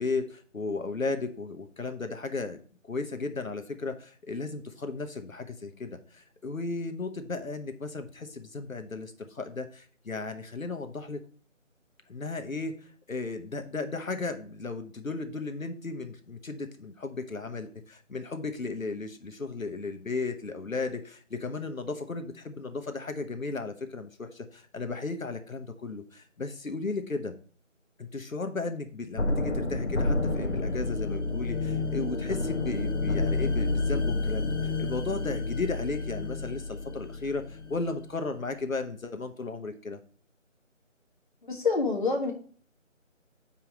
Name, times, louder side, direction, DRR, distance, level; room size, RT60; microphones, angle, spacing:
voice 1, 0.0-11.2 12.1-27.3 28.0-40.0, left 3 dB, 90° left, 7 dB, 1.1 m, -35 dB
sound 1, 29.2-38.0, left 3 dB, 60° left, 1.0 m, -30 dB
voice 2, 41.4-42.3, left 4 dB, 40° left, 1 dB, 1.5 m, -27 dB
5.6 x 4.8 x 5.2 m, 0.43 s
figure-of-eight pair, 165°, 40 cm